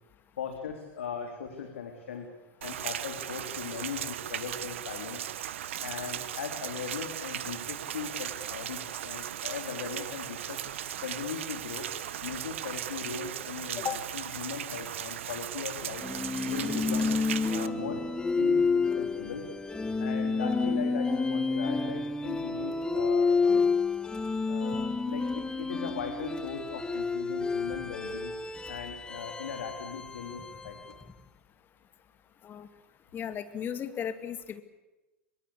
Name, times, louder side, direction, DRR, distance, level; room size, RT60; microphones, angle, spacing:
voice 1, 0.4-2.3 2.6-5.2 5.8-10.6 11.0-11.9 12.2-16.0 16.4-18.1 18.4-19.5 20.0-23.7 24.5-28.3 28.7-31.0, left 6 dB, 70° left, 5 dB, 3.6 m, -39 dB
Rain, 2.6-17.7, right 11 dB, 65° right, 1.4 m, -37 dB
sound 1, 16.0-31.1, left 4 dB, 10° left, 1.3 m, -29 dB
voice 2, 33.1-34.6, left 8 dB, 30° left, 11 dB, 2.3 m, -35 dB
24.0 x 23.5 x 8.5 m, 1.1 s
figure-of-eight pair, 95°, 7 cm